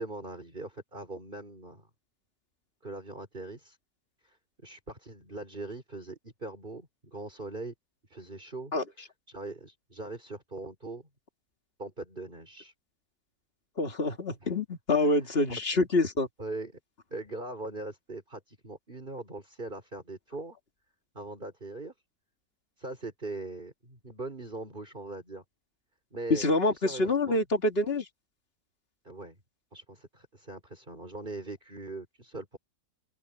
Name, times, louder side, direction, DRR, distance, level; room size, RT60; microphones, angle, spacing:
voice 1, 0.0-1.9 2.8-3.8 4.2-4.4 4.6-7.7 8.1-8.7 9.3-11.1 11.8-12.7 14.4-14.5 15.0-15.5 16.4-16.8 17.1-20.6 21.1-21.9 22.8-25.4 26.1-27.4 29.0-29.4 29.7-32.6, right 2 dB, 35° right, 4.9 m, -41 dB
voice 2, 13.8-16.3 26.3-28.1, left 2 dB, 40° left, 2.4 m, -26 dB
omnidirectional pair, 1.6 m